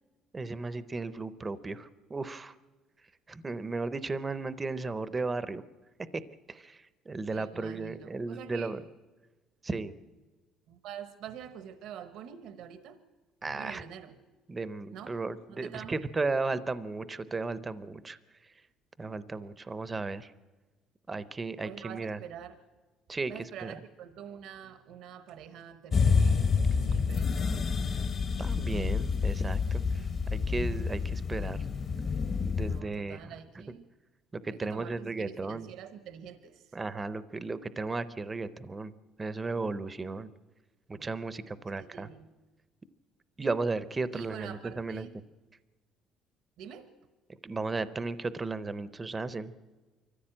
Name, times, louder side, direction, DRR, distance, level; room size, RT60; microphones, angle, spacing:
voice 1, 0.3-2.5 3.3-5.6 6.5-8.8 9.6-9.9 13.4-13.8 14.5-18.2 19.0-20.3 21.1-22.2 23.1-23.7 28.4-31.6 32.4-33.6 34.3-35.7 36.7-38.9 39.2-40.3 40.9-42.1 43.4-45.1 47.4-49.5, right 3 dB, 15° right, 15 dB, 0.6 m, -35 dB
voice 2, 7.3-8.7 10.7-13.0 13.5-14.2 14.9-15.2 15.5-16.0 21.6-22.6 23.3-28.1 32.7-33.9 34.5-36.7 41.8-42.3 44.1-45.2 46.6-46.9, right 8 dB, 65° right, 11 dB, 1.0 m, -46 dB
sound 1, 25.9-32.8, left 5 dB, 30° left, 0.8 m, -28 dB
23.5 x 14.5 x 8.8 m, 1.3 s
cardioid pair, 165°, 0 cm